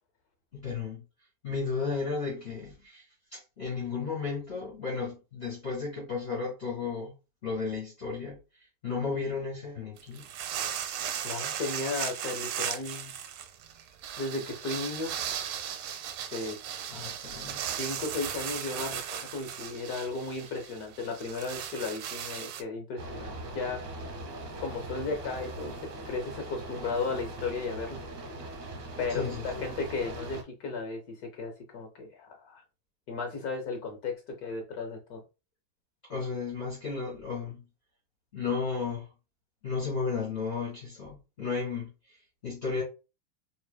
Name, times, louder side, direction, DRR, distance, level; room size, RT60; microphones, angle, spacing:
voice 1, 0.5-1.0 1.4-3.1 3.3-7.1 7.4-10.3 16.4-16.5 16.9-17.6 29.1-29.7 36.1-37.7 38.3-39.1 39.6-42.8, left 5 dB, 35° left, 1.8 m, -34 dB
sound 1, 10.0-22.6, right 9 dB, 85° right, 1.4 m, -36 dB
voice 2, 10.9-13.1 14.2-15.2 16.3-16.6 17.8-23.8 24.6-28.0 29.0-32.6 33.1-35.2, left 4 dB, 65° left, 1.0 m, -35 dB
sound 2, 23.0-30.4, right 1 dB, 60° right, 1.5 m, -40 dB
4.7 x 3.2 x 2.2 m
omnidirectional pair, 2.3 m